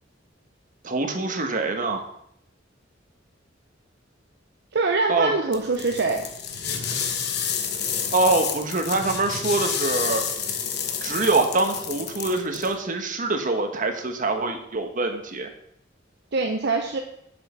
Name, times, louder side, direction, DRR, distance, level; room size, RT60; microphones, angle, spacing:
voice 1, 0.8-2.0 5.1-5.3 8.1-10.2 11.0-15.5, right 3 dB, 45° right, 5 dB, 1.3 m, -24 dB
voice 2, 4.7-6.3 16.3-17.0, right 3 dB, 60° right, 3 dB, 0.8 m, -24 dB
sound 1, 5.5-12.7, left 7 dB, 60° left, 1.2 m, -29 dB
7.5 x 7.3 x 5.6 m, 0.74 s
head